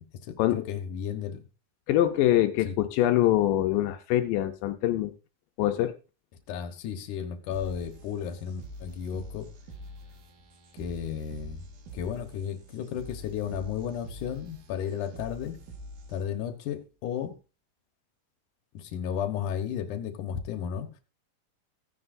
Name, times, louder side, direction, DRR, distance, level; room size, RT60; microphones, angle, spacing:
voice 1, 0.3-1.4 2.7-2.8 6.5-9.5 10.7-11.7 11.9-15.6 16.1-17.3 18.7-20.9, left 8 dB, 70° left, 7 dB, 2.6 m, -33 dB
voice 2, 1.9-5.1 5.6-6.0, left 13 dB, 90° left, 7 dB, 2.4 m, -24 dB
sound 1, 7.5-16.5, equal, 75° right, 3.1 m, -46 dB
16.0 x 9.5 x 2.6 m, 0.32 s
omnidirectional pair, 3.9 m